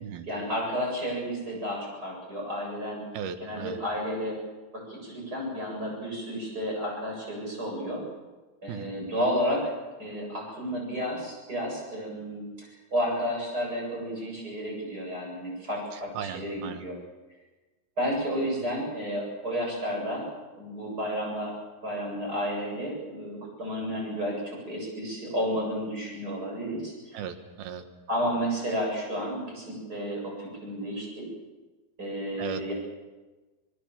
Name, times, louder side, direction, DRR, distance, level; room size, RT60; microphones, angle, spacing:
voice 1, 0.2-3.0 3.4-4.4 4.7-8.0 8.6-9.7 10.0-16.9 18.0-20.3 20.6-21.5 21.8-27.2 28.1-31.3 32.0-32.7, equal, 25° right, -1 dB, 8.3 m, -32 dB
voice 2, 3.1-3.8 8.7-8.9 15.9-16.9 27.1-27.8 32.4-32.7, right 8 dB, 75° right, 8 dB, 3.3 m, -37 dB
26.5 x 19.5 x 7.4 m, 1.2 s
omnidirectional pair, 4.4 m